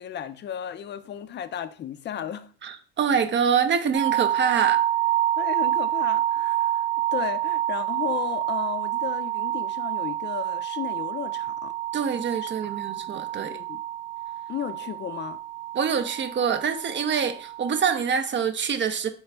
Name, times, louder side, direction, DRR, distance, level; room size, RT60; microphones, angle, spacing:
voice 1, 0.0-2.5 5.4-11.7 12.4-12.7 13.4-13.8 14.5-15.4, left 9 dB, 35° left, 0.5 m, -34 dB
voice 2, 2.6-4.8 11.9-13.6 15.7-19.1, right 6 dB, 35° right, 0.6 m, -25 dB
sound 1, 3.9-18.0, right 13 dB, 85° right, 0.8 m, -28 dB
4.6 x 2.4 x 3.3 m
hypercardioid pair, 60°, 34 cm